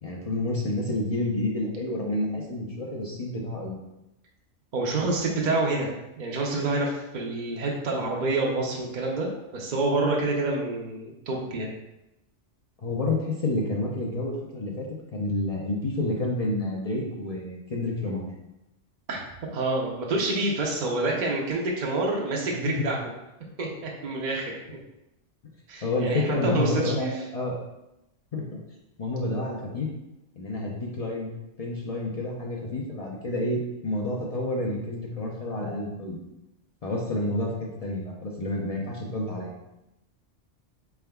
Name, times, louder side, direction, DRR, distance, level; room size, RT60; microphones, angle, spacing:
voice 1, 0.0-3.8 12.8-18.2 22.4-22.9 25.8-27.6 28.3-28.5 29.0-29.9 30.4-31.3 31.6-36.2 36.8-39.5, left 2 dB, 50° left, -2 dB, 0.4 m, -29 dB
voice 2, 4.7-5.9 6.2-9.3 9.5-11.7 19.1-19.2 19.5-23.0 23.6-24.8 25.7-27.2, right 2 dB, 50° right, -1 dB, 0.5 m, -27 dB
4.3 x 3.5 x 2.2 m, 0.91 s
omnidirectional pair, 1.3 m